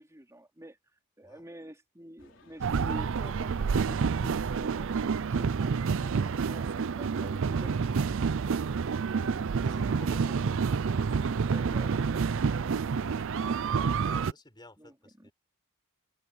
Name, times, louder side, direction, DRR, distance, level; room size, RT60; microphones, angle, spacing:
voice 1, 0.0-5.8 6.0-7.8 9.6-10.4 11.4-12.2 14.8-15.3, right 1 dB, 15° right, 3.5 m, -48 dB
sound 1, 2.2-14.2, left 2 dB, 60° left, 4.2 m, -56 dB
sound 2, 2.6-14.3, right 5 dB, 60° right, 0.5 m, -28 dB
voice 2, 9.6-10.5 12.6-13.8 14.0-15.3, left 2 dB, 20° left, 4.2 m, -54 dB
head